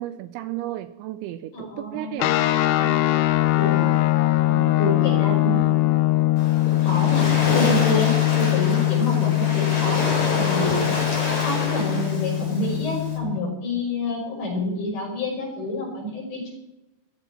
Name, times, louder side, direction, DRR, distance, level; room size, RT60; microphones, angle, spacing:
voice 1, 0.0-2.4 2.8-3.1 4.5-4.8, right 14 dB, 80° right, 2.8 m, -34 dB
voice 2, 1.5-2.2 3.5-4.0 4.8-5.6 6.7-10.8 11.4-16.5, left 1 dB, 55° left, 7.8 m, -28 dB
sound 1, 2.2-13.4, left 17 dB, 85° left, 3.3 m, -21 dB
Waves surf, 6.4-13.2, left 2 dB, 35° left, 4.7 m, -28 dB
21.0 x 14.5 x 4.4 m
omnidirectional pair, 5.7 m